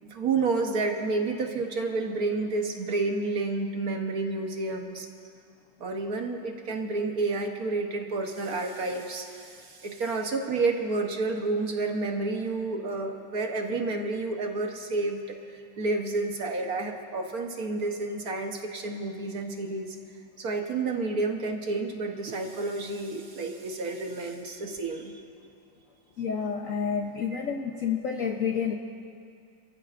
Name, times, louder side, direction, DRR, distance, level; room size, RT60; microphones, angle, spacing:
voice 1, 0.0-5.1 5.8-20.0 20.4-25.2 27.3-27.4, right 3 dB, 55° right, 3 dB, 1.3 m, -30 dB
voice 2, 26.2-28.7, left 6 dB, 60° left, 2 dB, 0.9 m, -29 dB
28.0 x 14.5 x 2.5 m, 2.4 s
omnidirectional pair, 2.1 m